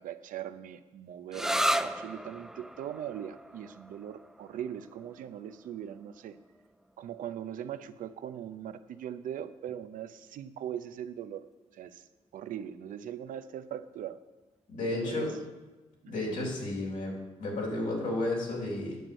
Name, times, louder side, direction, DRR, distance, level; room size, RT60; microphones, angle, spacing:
voice 1, 0.0-6.4 7.0-11.5 11.7-12.0 12.3-14.2 14.9-15.3 16.0-16.1, right 10 dB, 80° right, 11 dB, 0.6 m, -40 dB
sound 1, 1.3-8.7, equal, 5° right, 0.5 m, -36 dB
voice 2, 14.7-15.3 16.1-19.0, left 2 dB, 80° left, -2 dB, 3.5 m, -32 dB
9.3 x 6.1 x 7.9 m, 1.2 s
cardioid pair, 75°, 14 cm